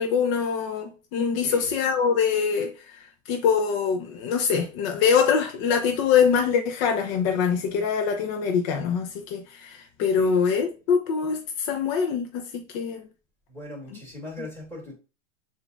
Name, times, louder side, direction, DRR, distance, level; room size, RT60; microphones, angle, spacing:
voice 1, 0.0-2.7 3.3-13.0, left 6 dB, 45° left, 0.7 m, -24 dB
voice 2, 13.5-14.9, left 2 dB, 5° left, 2.6 m, -39 dB
6.7 x 2.6 x 2.5 m
figure-of-eight pair, 95°, 39 cm